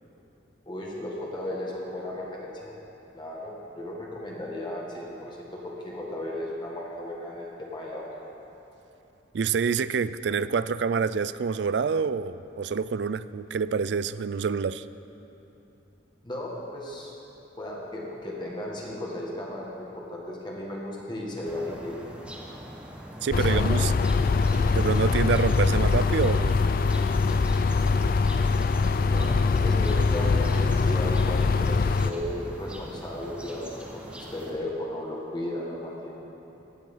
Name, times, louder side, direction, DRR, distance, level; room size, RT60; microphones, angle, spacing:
voice 1, 0.7-2.7 3.1-8.1 16.2-17.1 17.6-22.0 23.3-24.2 29.1-36.2, left 1 dB, 25° left, -4 dB, 1.9 m, -35 dB
voice 2, 9.3-14.8 23.2-23.9 24.7-26.6, right 5 dB, 70° right, 16 dB, 0.4 m, -27 dB
sound 1, 21.4-34.5, equal, 5° right, 1.3 m, -43 dB
sound 2, 23.3-32.1, left 4 dB, 50° left, 0.4 m, -23 dB
15.5 x 10.5 x 5.6 m, 3.0 s
head